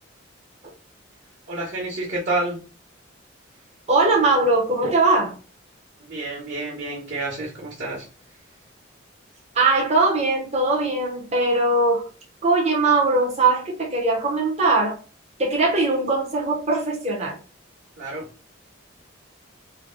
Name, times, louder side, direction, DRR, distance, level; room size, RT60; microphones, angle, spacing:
voice 1, 1.5-2.6 6.0-8.1 18.0-18.2, right 2 dB, 60° right, 1.3 m, -29 dB
voice 2, 3.9-5.3 9.5-12.1 12.4-15.0 15.4-17.4, right 3 dB, 30° right, 0.9 m, -20 dB
3.2 x 2.2 x 3.8 m
head